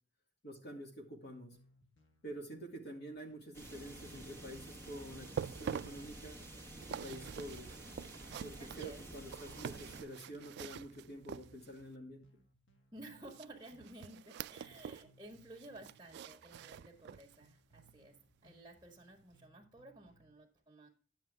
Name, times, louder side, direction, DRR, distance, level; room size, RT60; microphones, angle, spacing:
voice 1, 0.4-1.6 2.2-6.4 6.9-7.8 8.4-12.2, right 1 dB, 60° left, 2 dB, 2.7 m, -48 dB
sound 1, 1.5-20.3, right 1 dB, 80° left, 1.7 m, -69 dB
sound 2, 3.5-10.0, right 1 dB, 15° left, 1.9 m, -51 dB
sound 3, 5.2-11.9 13.3-15.1 15.4-17.4 17.8-17.9 18.5-18.6, right 8 dB, 60° right, 0.3 m, -46 dB
voice 2, 8.6-9.0 12.9-20.9, right 1 dB, 15° right, 1 dB, 1.8 m, -54 dB
10.5 x 7.5 x 3.5 m, 0.38 s
head